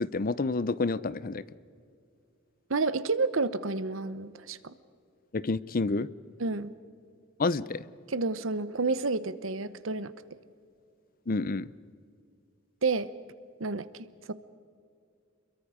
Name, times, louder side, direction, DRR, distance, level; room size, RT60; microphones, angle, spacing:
voice 1, 0.0-1.4 5.3-6.1 7.4-7.8 11.3-11.7, left 3 dB, 45° left, 18 dB, 0.6 m, -29 dB
voice 2, 2.7-4.7 6.4-6.7 8.1-10.1 12.8-13.1 13.6-13.9 14.3-14.4, right 3 dB, 90° right, 14 dB, 0.9 m, -29 dB
28.5 x 22.5 x 5.1 m, 2.3 s
head